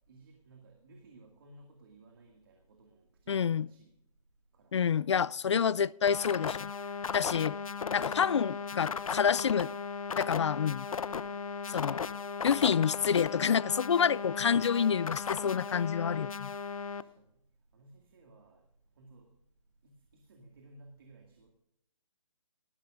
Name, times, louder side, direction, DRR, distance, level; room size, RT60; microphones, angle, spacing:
voice 1, 0.1-3.9 4.5-4.8 14.0-14.3 16.9-17.4 17.7-18.7 18.9-19.3 19.8-21.5, right 2 dB, 40° right, 2.2 m, -58 dB
voice 2, 3.3-3.7 4.7-6.7 7.1-7.6 7.9-9.7 10.1-10.9 11.7-12.1 12.4-16.5, left 7 dB, 55° left, 0.4 m, -28 dB
sound 1, 6.1-17.0, left 5 dB, 75° left, 0.8 m, -36 dB
19.0 x 14.5 x 2.5 m
hypercardioid pair, 170°, 18 cm